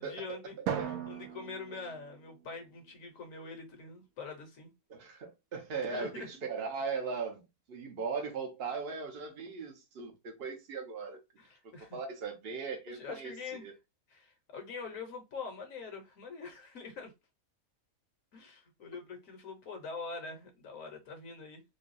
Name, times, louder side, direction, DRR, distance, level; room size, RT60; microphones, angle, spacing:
voice 1, 0.0-4.7 5.9-6.3 11.4-12.0 12.9-13.7 14.1-17.1 18.3-21.6, left 4 dB, 65° left, 1.3 m, -44 dB
Drum, 0.7-2.9, right 8 dB, 75° right, 1.1 m, -39 dB
voice 2, 4.9-7.4 7.7-11.2 11.9-13.4 13.6-13.7 18.9-19.0, right 5 dB, 45° right, 1.0 m, -38 dB
3.8 x 2.3 x 2.5 m
omnidirectional pair, 1.5 m